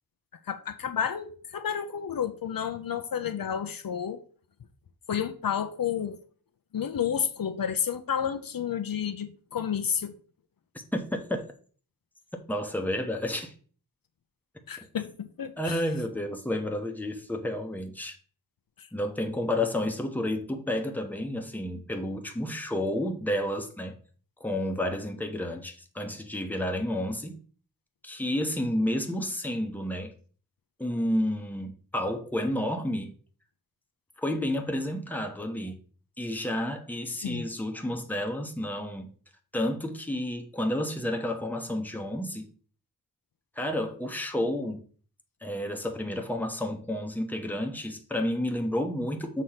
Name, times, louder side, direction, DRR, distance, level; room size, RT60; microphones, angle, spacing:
voice 1, 0.5-4.2 5.1-6.2 6.7-10.1 14.7-15.8 18.8-18.9 37.2-37.4, left 8 dB, 70° left, 0.7 m, -31 dB
voice 2, 12.5-13.5 15.6-18.2 18.9-23.9 24.4-27.4 28.0-30.1 30.8-33.1 34.2-35.8 36.2-39.1 39.5-42.5 43.6-44.8 45.4-49.4, left 1 dB, 5° left, 0.9 m, -30 dB
6.6 x 3.1 x 5.7 m
wide cardioid pair, 80°, 36 cm